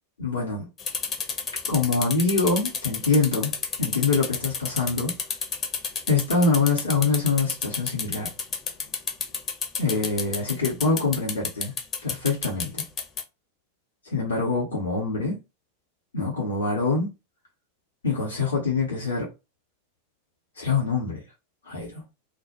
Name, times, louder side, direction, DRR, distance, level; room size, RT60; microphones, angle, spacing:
voice 1, 0.2-0.7 1.7-3.5 3.8-5.1 6.1-8.3 9.8-11.7 12.0-12.8 14.0-15.4 16.1-17.1 18.0-19.3 20.6-21.2 21.7-22.0, left 4 dB, 70° left, 0.7 m, -24 dB
sound 1, 0.8-13.2, left 5 dB, 25° left, 0.6 m, -30 dB
2.1 x 2.0 x 2.8 m
figure-of-eight pair, 90°, 0 cm